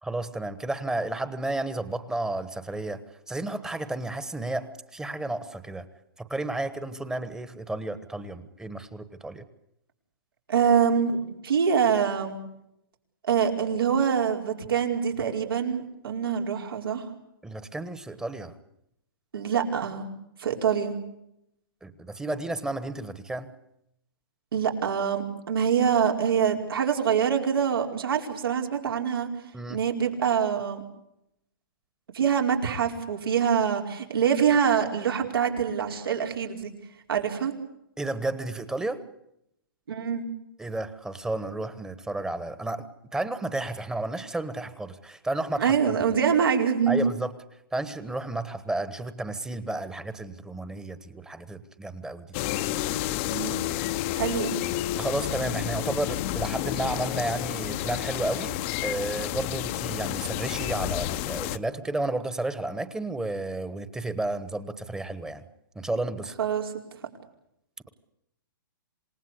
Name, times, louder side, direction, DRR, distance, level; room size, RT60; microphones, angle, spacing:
voice 1, 0.0-5.9 6.2-9.4 17.4-18.6 21.8-23.5 29.5-29.8 38.0-39.0 40.6-42.9 43.1-45.7 46.9-47.3 47.7-52.3 55.0-65.4 65.7-66.3, right 2 dB, 5° right, 13 dB, 1.3 m, -32 dB
voice 2, 10.5-12.4 13.2-17.1 19.3-20.1 20.4-21.0 24.5-29.3 29.7-30.8 32.1-36.7 37.1-37.5 39.9-40.2 45.6-47.1 53.3-53.7 54.1-54.6 66.4-66.7, right 7 dB, 90° right, 3 dB, 4.8 m, -25 dB
sound 1, 52.3-61.6, left 14 dB, 35° left, 0.9 m, -30 dB
27.5 x 19.0 x 8.3 m, 0.80 s
hypercardioid pair, 150°, 12 cm